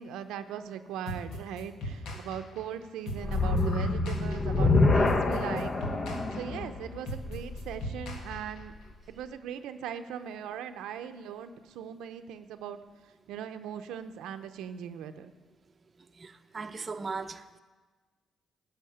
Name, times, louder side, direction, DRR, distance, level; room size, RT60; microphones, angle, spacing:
voice 1, 0.0-5.7 6.3-8.7 9.1-15.3, right 9 dB, 90° right, 0.6 m, -39 dB
sound 1, 1.1-8.9, equal, 85° left, 1.7 m, -40 dB
sound 2, 3.2-8.5, left 3 dB, 40° left, 0.9 m, -27 dB
voice 2, 16.2-17.4, right 4 dB, 35° right, 0.7 m, -37 dB
12.5 x 5.8 x 8.6 m
cardioid pair, 90°, 0 cm